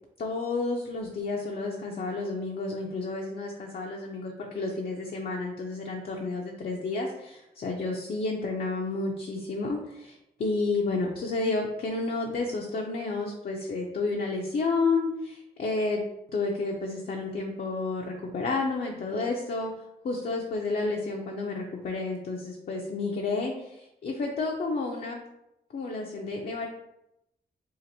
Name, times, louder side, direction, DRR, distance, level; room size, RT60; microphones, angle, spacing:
voice 1, 0.2-16.0 16.3-19.7 20.0-25.2 25.7-26.7, left 3 dB, 60° left, 0 dB, 0.5 m, -31 dB
2.8 x 2.5 x 4.0 m, 0.86 s
wide cardioid pair, 85°, 17 cm